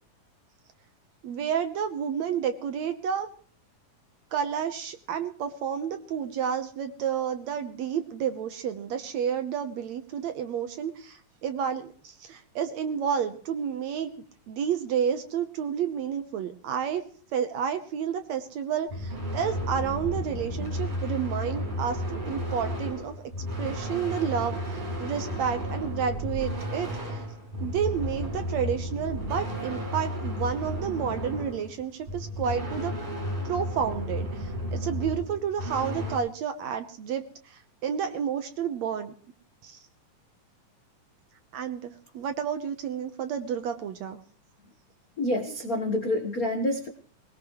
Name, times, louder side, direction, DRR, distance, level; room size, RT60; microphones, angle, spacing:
voice 1, 1.2-3.3 4.3-14.1 14.5-17.0 17.3-23.2 23.6-27.2 27.6-32.9 33.4-39.1 39.6-39.8 41.5-44.2, right 8 dB, 65° right, 9 dB, 2.0 m, -30 dB
sound 1, 18.9-36.2, equal, 45° right, 7.5 m, -33 dB
voice 2, 45.2-46.9, left 1 dB, 60° left, 4 dB, 0.9 m, -27 dB
20.5 x 20.0 x 3.2 m, 0.44 s
omnidirectional pair, 3.9 m